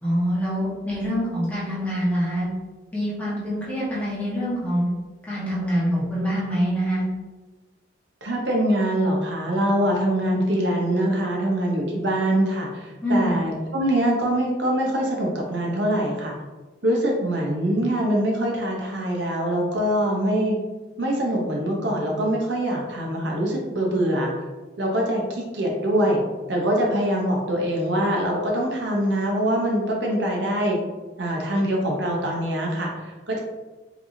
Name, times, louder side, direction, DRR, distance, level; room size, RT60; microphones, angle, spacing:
voice 1, 0.0-2.5 2.9-4.9 5.3-7.0 13.0-13.4, equal, 10° left, -9 dB, 1.3 m, -25 dB
voice 2, 8.2-16.3 16.8-20.6 21.0-24.3 24.8-26.2 26.5-30.8 31.2-33.4, right 1 dB, 70° right, -1 dB, 0.9 m, -23 dB
4.8 x 3.4 x 2.7 m, 1.2 s
head